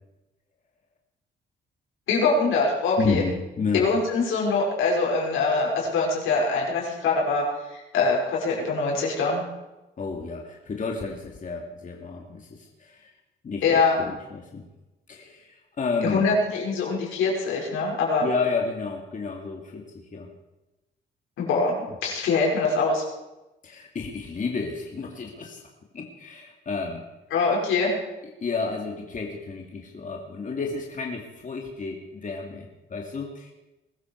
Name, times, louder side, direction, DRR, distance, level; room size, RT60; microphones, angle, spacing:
voice 1, 2.1-3.2 3.7-7.4 7.9-9.4 13.6-14.0 16.0-18.3 21.4-23.0 27.3-27.9, left 4 dB, 85° left, -2 dB, 5.4 m, -23 dB
voice 2, 3.0-3.8 10.0-13.1 13.4-14.7 15.1-16.2 18.2-20.3 23.6-25.6 25.9-27.0 28.4-33.5, left 4 dB, 40° left, 0 dB, 2.6 m, -31 dB
21.5 x 13.5 x 4.7 m, 1.0 s
cardioid pair, 90°, 20 cm